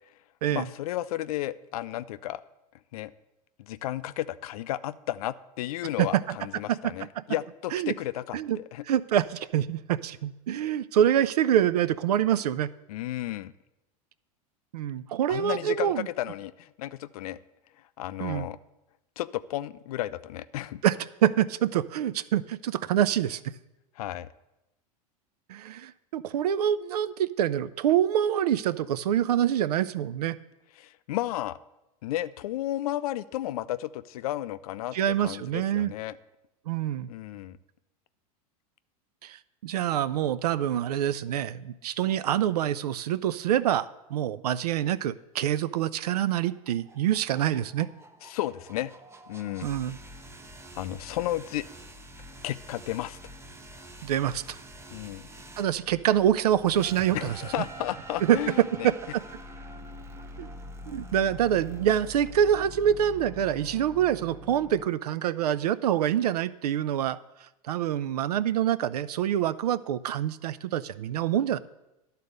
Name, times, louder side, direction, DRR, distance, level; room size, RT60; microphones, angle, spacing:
voice 1, 0.5-2.4 2.9-3.1 3.6-8.8 12.9-13.5 15.3-17.4 18.0-18.6 19.2-20.8 24.0-24.3 30.8-31.6 32.0-36.2 37.1-37.6 48.2-48.9 49.3-49.7 50.8-51.6 52.4-53.2 54.9-55.3 57.1-58.9, left 14 dB, 70° left, 15 dB, 0.4 m, -33 dB
voice 2, 6.0-6.4 6.7-7.2 7.7-7.9 8.3-8.6 8.9-12.7 14.7-16.1 18.2-18.5 20.8-21.0 21.2-23.5 25.5-30.4 34.9-35.9 36.7-37.1 39.2-47.9 49.6-50.0 54.0-54.6 55.6-57.4 58.2-58.4 58.8-58.9 60.4-60.5 60.9-67.2 67.7-71.6, right 10 dB, 85° right, 17 dB, 0.4 m, -26 dB
sound 1, 46.0-64.9, equal, 15° right, 0.7 m, -45 dB
11.0 x 4.1 x 6.5 m, 0.94 s
hypercardioid pair, 100°, 20 cm